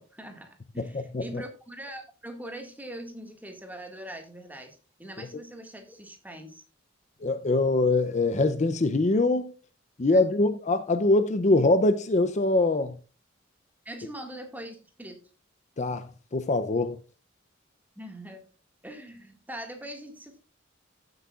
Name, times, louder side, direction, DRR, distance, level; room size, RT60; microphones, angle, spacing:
voice 1, 0.0-6.6 10.1-10.2 13.9-15.2 18.0-18.4 18.8-20.4, right 1 dB, 10° right, 1.8 m, -42 dB
voice 2, 0.8-1.4 7.2-9.5 10.0-13.0 15.8-17.0, left 2 dB, 35° left, 0.5 m, -24 dB
15.0 x 7.9 x 2.4 m
head